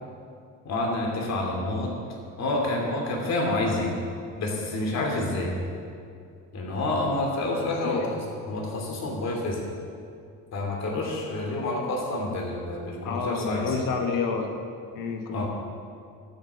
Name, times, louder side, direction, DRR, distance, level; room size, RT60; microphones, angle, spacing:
voice 1, 0.6-1.9 2.4-3.9 4.4-5.5 6.5-8.2 8.4-9.7 10.5-13.7 15.3-15.5, left 2 dB, 50° left, 0 dB, 2.6 m, -28 dB
voice 2, 13.0-14.5 14.9-15.5, left 5 dB, 65° left, 4 dB, 1.5 m, -29 dB
12.5 x 6.7 x 7.8 m, 2.3 s
cardioid pair, 130°, 35 cm